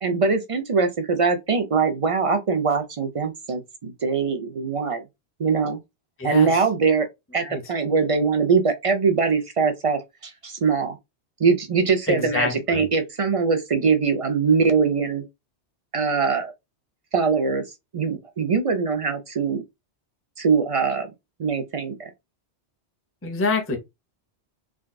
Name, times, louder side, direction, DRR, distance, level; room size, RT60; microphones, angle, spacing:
voice 1, 0.0-5.0 5.4-5.8 6.2-7.1 7.3-11.0 11.4-15.2 15.9-16.5 17.1-17.6 17.9-19.6 20.4-21.1 21.4-22.1, right 5 dB, 45° right, 0.4 m, -22 dB
voice 2, 6.2-6.5 7.4-7.6 12.1-12.9 23.2-23.8, left 3 dB, 15° left, 0.6 m, -26 dB
3.5 x 2.3 x 2.3 m
omnidirectional pair, 1.1 m